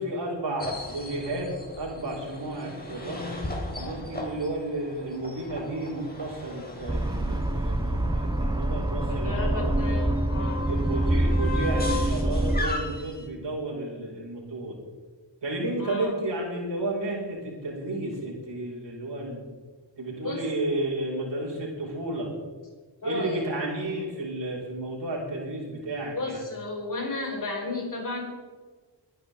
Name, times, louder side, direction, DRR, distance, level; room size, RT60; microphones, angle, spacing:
voice 1, 0.0-1.5 1.8-3.2 3.8-10.0 10.6-14.8 15.4-19.4 20.0-22.3 23.0-26.4, right 2 dB, 65° right, -3 dB, 5.4 m, -32 dB
sound 1, 0.6-13.2, left 3 dB, 20° left, 3.7 m, -37 dB
sound 2, 6.9-12.6, right 1 dB, 10° right, 0.9 m, -26 dB
voice 2, 9.1-10.7 15.8-16.1 20.2-20.4 23.0-23.4 26.1-28.2, left 2 dB, 45° left, 0 dB, 4.6 m, -33 dB
22.5 x 11.5 x 3.7 m, 1.4 s
wide cardioid pair, 80°, 45 cm